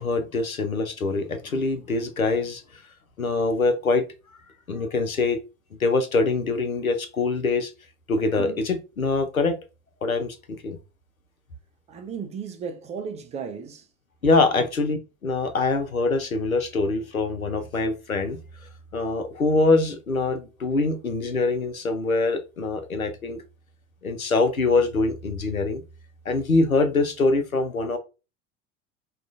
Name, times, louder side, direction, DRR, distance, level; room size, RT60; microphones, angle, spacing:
voice 1, 0.0-2.6 3.2-4.0 4.7-5.4 5.8-7.7 8.1-9.6 10.0-10.8 14.2-15.0 15.2-18.4 18.9-23.4 24.0-25.8 26.3-28.0, left 3 dB, 90° left, 0.6 m, -24 dB
voice 2, 11.9-13.9 14.5-14.6, right 6 dB, 15° right, 0.4 m, -35 dB
4.7 x 2.3 x 2.5 m
figure-of-eight pair, 75°, 41 cm